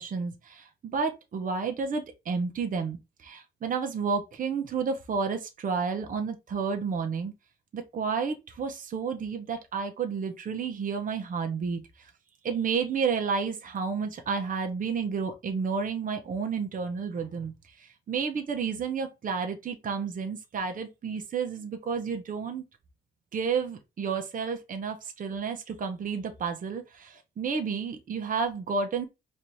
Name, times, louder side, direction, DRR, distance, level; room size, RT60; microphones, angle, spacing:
voice 1, 0.0-7.3 7.7-11.8 12.4-17.5 17.8-22.6 23.3-29.0, right 5 dB, 45° right, 0.9 m, -31 dB
4.2 x 2.6 x 3.2 m
cardioid pair, 90°, 20 cm